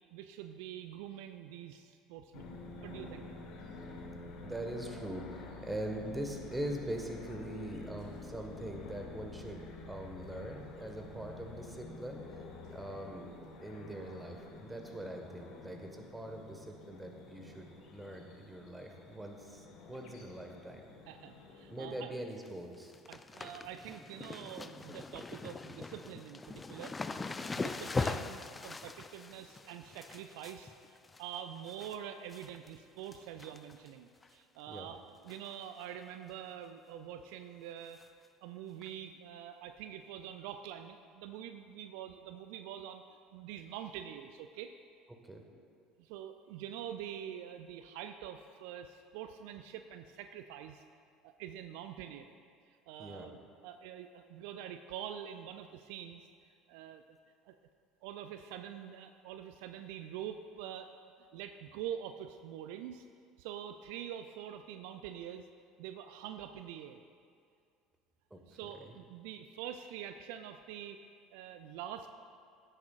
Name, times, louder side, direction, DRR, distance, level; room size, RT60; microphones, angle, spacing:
voice 1, 0.0-3.3 21.1-22.1 23.1-26.9 27.6-38.0 38.4-43.0 43.3-44.7 46.0-50.8 51.2-52.3 52.7-53.4 53.6-56.3 56.7-57.0 57.4-57.6 58.0-61.0 61.3-63.0 63.4-65.4 65.8-67.0 68.5-71.0 71.3-72.1, right 10 dB, 65° right, 8 dB, 0.4 m, -45 dB
sound 1, 2.3-22.0, left 3 dB, 55° left, 1.4 m, -49 dB
voice 2, 4.4-12.5 12.7-13.3 13.6-20.9 21.7-22.9 23.8-24.0 34.7-34.9 45.3-45.4 53.0-53.3 68.3-68.9, right 1 dB, 10° right, 3 dB, 1.4 m, -42 dB
sound 2, 22.2-22.5 22.7-32.0 32.3-32.7 33.1-33.9 34.2-34.3 35.3-35.6 35.8-35.9 36.3-36.4 38.0-38.1 38.8-38.9, left 3 dB, 20° left, 0.4 m, -41 dB
16.0 x 8.9 x 2.4 m, 2.3 s
figure-of-eight pair, 65°, 0 cm